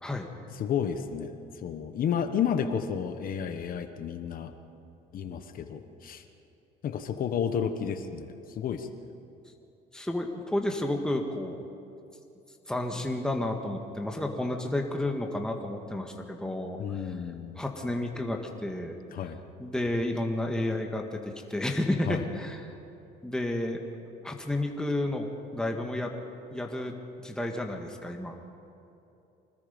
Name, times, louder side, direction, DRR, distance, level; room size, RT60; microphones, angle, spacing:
voice 1, 0.6-1.3 1.6-4.5 5.1-6.2 6.8-8.9 16.8-17.6 19.1-19.4 22.1-22.2, left 7 dB, 55° left, 8 dB, 1.3 m, -31 dB
voice 2, 9.9-11.7 12.7-17.0 17.6-19.0 19.6-22.7 23.2-23.8 24.2-26.1 26.5-26.9 27.2-28.4, left 1 dB, 5° left, 2 dB, 1.8 m, -31 dB
25.0 x 19.5 x 5.3 m, 2.8 s
cardioid pair, 110°, 17 cm